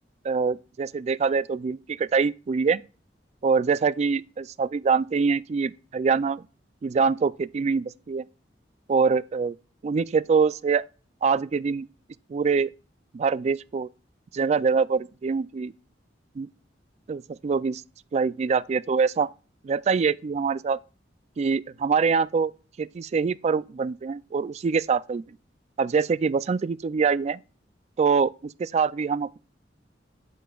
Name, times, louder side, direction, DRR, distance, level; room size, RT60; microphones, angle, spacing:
voice 1, 0.2-2.8 3.4-6.4 6.8-8.2 8.9-9.6 9.8-10.8 11.2-11.9 12.3-12.7 13.1-13.9 14.3-15.7 16.4-16.5 17.1-17.8 18.1-19.3 19.6-20.8 21.4-22.5 22.8-25.2 25.8-27.4 28.0-29.4, right 5 dB, 40° right, 0.3 m, -24 dB
8.2 x 7.8 x 2.3 m
head